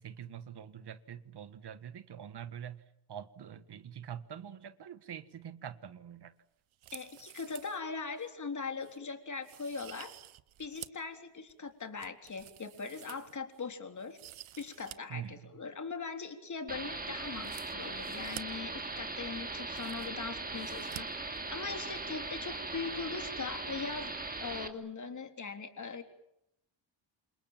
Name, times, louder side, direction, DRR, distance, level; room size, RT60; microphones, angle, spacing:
voice 1, 0.0-2.8 3.1-6.3 15.1-15.6, right 9 dB, 55° right, 12 dB, 1.7 m, -45 dB
sound 1, 6.7-7.8 8.2-8.3 8.8-9.0 9.4-11.1 11.5-13.6 14.0-15.0 15.2-15.3 17.3-18.4 19.2-19.3 19.5-20.2 20.6-21.0 21.3-21.4, right 13 dB, 85° right, 1.1 m, -50 dB
voice 2, 6.9-10.1 10.6-14.2 14.6-21.1 21.5-24.1 24.4-26.0, left 5 dB, 40° left, 6 dB, 3.8 m, -40 dB
sound 2, 16.7-24.7, right 3 dB, 20° right, 2.8 m, -39 dB
28.5 x 27.5 x 7.5 m, 0.79 s
wide cardioid pair, 140°, 47 cm